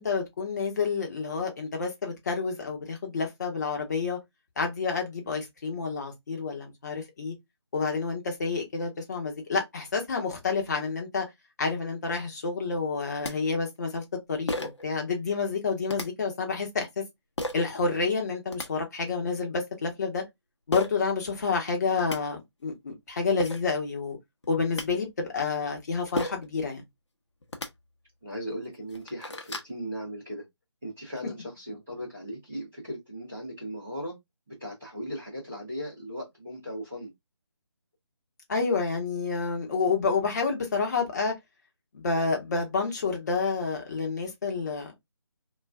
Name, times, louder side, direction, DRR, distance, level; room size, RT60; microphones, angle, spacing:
voice 1, 0.0-4.2 4.6-7.3 7.7-11.3 11.6-17.0 17.5-20.2 20.7-24.2 24.5-26.8 38.5-41.3 41.9-44.9, left 4 dB, 40° left, 0.9 m, -29 dB
sound 1, 12.9-13.0 13.2-13.3 14.5-14.8 15.9-16.1 17.4-17.6 18.3-18.7 20.7-20.9 21.7-21.8 22.0-22.2 23.1-23.2 23.4-23.6 24.4-24.9 26.2-26.5 27.4-27.7 28.3-28.4 28.8-29.7, left 1 dB, 75° left, 0.8 m, -33 dB
voice 2, 28.2-30.4 30.8-34.1 34.5-37.1, equal, 5° right, 0.3 m, -37 dB
2.4 x 2.2 x 3.4 m
figure-of-eight pair, 160°, 15 cm